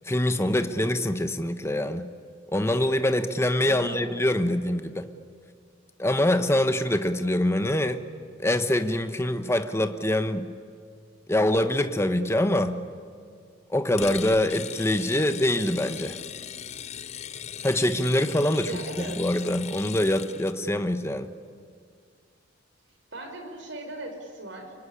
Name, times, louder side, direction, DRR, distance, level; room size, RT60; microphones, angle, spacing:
voice 1, 0.1-2.1 2.5-5.1 6.0-8.0 8.4-10.5 11.3-12.8 13.7-16.2 17.6-18.7 19.0-21.3, left 1 dB, 15° left, 8 dB, 1.1 m, -24 dB
voice 2, 3.6-4.1 18.6-19.3 23.1-24.7, right 2 dB, 65° right, 4 dB, 4.9 m, -38 dB
sound 1, 14.0-20.6, left 8 dB, 35° left, 0.6 m, -39 dB
25.0 x 24.5 x 9.9 m, 2.2 s
head